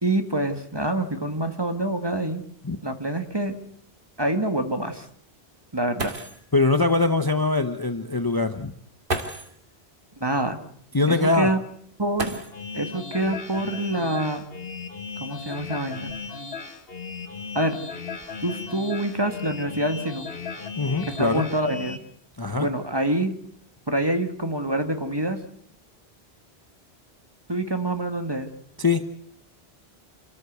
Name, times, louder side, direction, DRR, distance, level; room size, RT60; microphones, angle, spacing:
voice 1, 0.0-2.4 2.8-3.6 4.2-5.1 5.7-6.2 10.2-10.6 11.1-11.6 12.0-12.4 12.7-14.4 15.2-16.1 17.5-17.8 18.4-20.3 21.1-22.0 22.6-23.3 23.9-25.4 27.5-28.5, right 1 dB, 25° right, 7 dB, 1.7 m, -26 dB
sound 1, 6.0-6.5 7.8-7.9 9.0-9.6 12.1-12.9 14.3-14.4 15.1-16.5 17.2-17.6 18.0-18.4, right 2 dB, 55° right, 2.0 m, -34 dB
voice 2, 6.5-8.7 10.9-11.5 20.8-21.5 22.4-22.7 28.8-29.0, left 3 dB, 20° left, 9 dB, 0.9 m, -22 dB
sound 2, 12.5-22.0, left 5 dB, 65° left, 2.0 m, -36 dB
27.5 x 13.5 x 8.0 m, 0.66 s
omnidirectional pair, 1.1 m